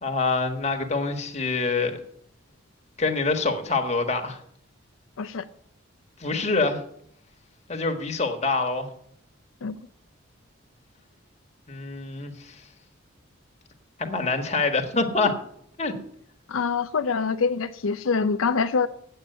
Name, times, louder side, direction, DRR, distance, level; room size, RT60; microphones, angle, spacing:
voice 1, 0.0-2.0 3.0-4.4 6.2-6.8 7.7-8.9 11.7-12.6 14.0-15.4 15.8-15.9, left 3 dB, 35° left, 1.5 m, -25 dB
voice 2, 16.5-18.9, left 5 dB, 85° left, 0.5 m, -25 dB
8.6 x 8.0 x 9.0 m
head